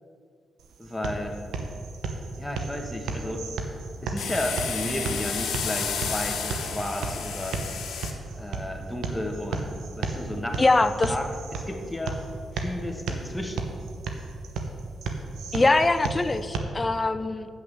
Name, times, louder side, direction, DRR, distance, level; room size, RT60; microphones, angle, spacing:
sound 1, 0.6-16.6, right 3 dB, 85° right, 0.9 m, -34 dB
voice 1, 0.8-1.4 2.3-3.4 4.0-7.6 8.4-10.6 11.0-12.2 12.5-13.7, left 1 dB, 10° left, 2 dB, 1.5 m, -33 dB
sound 2, 4.2-8.1, left 7 dB, 85° left, 1.1 m, -32 dB
voice 2, 10.6-11.1 15.5-17.5, left 2 dB, 30° left, 11 dB, 0.6 m, -22 dB
8.4 x 5.8 x 7.3 m, 2.4 s
cardioid pair, 60°, 0 cm